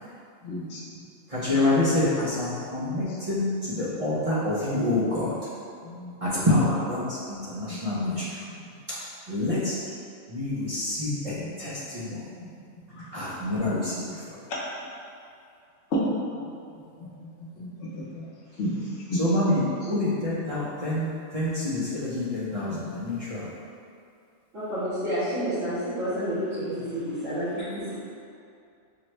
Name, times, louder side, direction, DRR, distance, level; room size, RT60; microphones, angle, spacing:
voice 1, 0.4-0.8 2.8-3.2 3.7-4.0 5.8-6.1 7.7-7.8 8.5-8.7 11.4-11.5 12.4-12.5 13.0-13.1 14.5-14.6 15.9-16.0 16.4-16.5 17.0-17.1 17.6-18.2 18.6-19.2 22.7-23.2 26.7-26.9, equal, 65° left, -4 dB, 1.0 m, -33 dB
voice 2, 1.3-5.3 6.2-8.2 9.3-9.8 10.3-12.2 13.1-14.4 19.1-23.5, left 2 dB, 40° right, -10 dB, 0.5 m, -27 dB
voice 3, 24.5-27.9, equal, 60° right, -19 dB, 2.0 m, -29 dB
4.8 x 2.2 x 3.0 m, 2.4 s
omnidirectional pair, 1.4 m